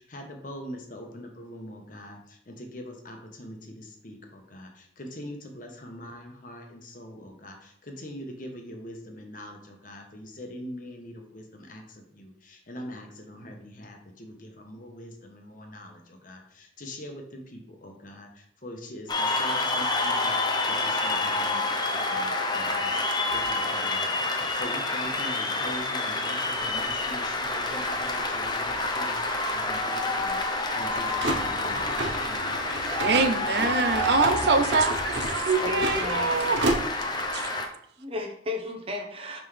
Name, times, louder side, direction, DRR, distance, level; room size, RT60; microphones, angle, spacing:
voice 1, 0.0-22.9 23.3-30.5 30.7-31.9 32.2-32.5, equal, 50° left, 3 dB, 1.0 m, -43 dB
Cheering / Applause, 19.1-37.7, left 2 dB, 25° left, 0.6 m, -28 dB
sound 1, 26.6-37.3, right 2 dB, 90° right, 0.9 m, -34 dB
voice 2, 33.0-36.6 37.3-37.5, right 4 dB, 65° right, 9 dB, 0.5 m, -25 dB
voice 3, 35.6-36.5 38.0-39.4, left 2 dB, 30° right, 3 dB, 0.9 m, -33 dB
5.8 x 5.0 x 3.3 m, 0.69 s
head